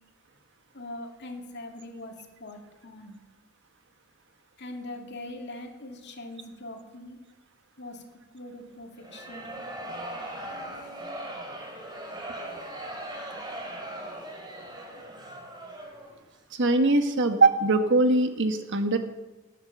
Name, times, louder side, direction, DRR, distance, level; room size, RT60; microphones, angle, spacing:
voice 1, 0.7-2.1 2.4-3.2 4.6-7.2 7.8-8.0 8.3-9.5 10.6-10.7, left 2 dB, 55° left, 3 dB, 2.6 m, -41 dB
sound 1, 8.9-16.2, right 1 dB, 20° right, 3.5 m, -39 dB
voice 2, 16.6-19.0, right 2 dB, 60° right, 7 dB, 1.4 m, -22 dB
18.5 x 10.0 x 6.7 m, 1.1 s
head